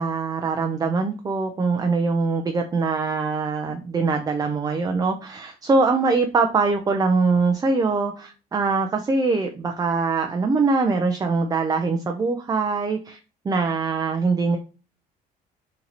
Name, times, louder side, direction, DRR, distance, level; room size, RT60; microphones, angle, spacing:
voice 1, 0.0-13.2 13.4-14.6, right 4 dB, 20° right, 4 dB, 0.5 m, -23 dB
3.9 x 2.8 x 2.8 m, 0.35 s
cardioid pair, 110°, 17 cm